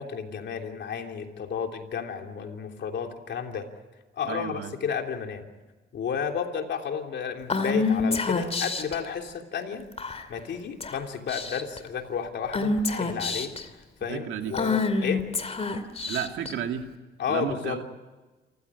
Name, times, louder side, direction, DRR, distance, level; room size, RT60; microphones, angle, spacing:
voice 1, 0.0-3.7 4.2-5.4 5.9-9.9 10.3-13.5 14.0-15.2 17.2-17.8, left 7 dB, 60° left, 4 dB, 3.2 m, -32 dB
voice 2, 4.2-4.7 14.1-14.5 16.1-16.9 17.3-17.9, right 8 dB, 75° right, 5 dB, 2.5 m, -32 dB
Female speech woman speaking / Whispering, 7.5-9.0 10.0-10.4 10.8-11.0 11.3-11.8 12.5-13.6 14.5-16.5, left 4 dB, 30° left, 2.7 m, -27 dB
28.0 x 15.5 x 9.7 m, 1.2 s
cardioid pair, 90°, 20 cm